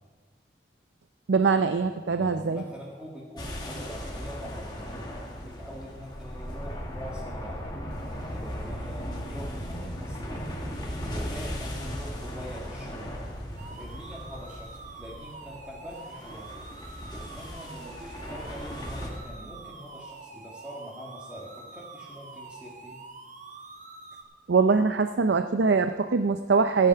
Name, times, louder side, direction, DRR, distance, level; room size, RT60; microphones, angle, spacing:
voice 1, 1.3-2.6 24.5-26.9, right 4 dB, 75° right, 8 dB, 0.5 m, -23 dB
voice 2, 2.1-4.9 5.4-7.6 8.3-10.5 11.0-13.2 13.7-16.7 17.1-23.0, equal, 5° right, -6 dB, 1.9 m, -44 dB
sound 1, 3.4-19.1, equal, 25° left, 1.9 m, -37 dB
sound 2, 13.6-24.2, right 3 dB, 45° right, 1.2 m, -46 dB
14.5 x 9.1 x 5.6 m, 1.5 s
head